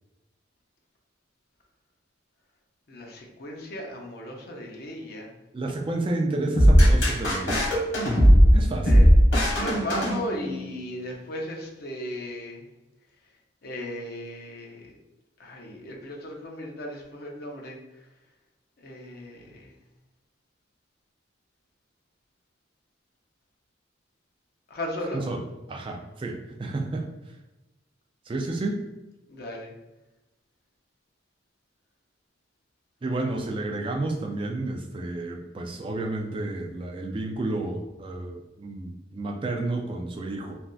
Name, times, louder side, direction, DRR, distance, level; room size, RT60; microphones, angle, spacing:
voice 1, 2.9-5.3 8.8-9.1 9.4-12.6 13.6-14.9 15.4-17.8 18.8-19.7 24.7-25.2 29.3-29.7, left 1 dB, 55° left, 0 dB, 0.6 m, -36 dB
voice 2, 5.5-7.6 8.5-9.1 25.1-27.1 28.3-28.8 33.0-40.6, right 2 dB, 25° right, 3 dB, 0.3 m, -31 dB
sound 1, 6.6-10.7, equal, 80° left, 1.4 m, -18 dB
3.3 x 2.6 x 2.3 m, 1.0 s
head